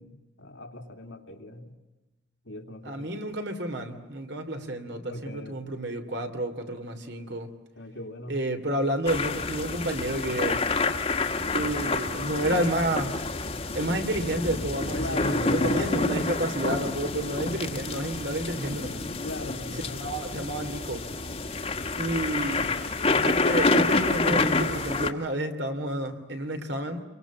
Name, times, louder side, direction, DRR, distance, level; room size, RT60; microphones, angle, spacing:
voice 1, 0.0-1.8 2.4-3.1 4.8-5.7 6.3-6.4 7.8-8.4 15.0-16.0 17.2-17.6 19.2-20.2 22.5-23.1, left 1 dB, 80° left, 3 dB, 2.7 m, -39 dB
voice 2, 2.8-7.5 8.3-10.6 11.5-13.2 13.7-19.0 20.0-21.1 22.0-22.7 23.2-27.0, right 1 dB, 65° right, 6 dB, 3.0 m, -30 dB
sound 1, 9.1-25.1, left 3 dB, 35° left, 1.6 m, -28 dB
29.0 x 24.0 x 7.3 m, 1.0 s
head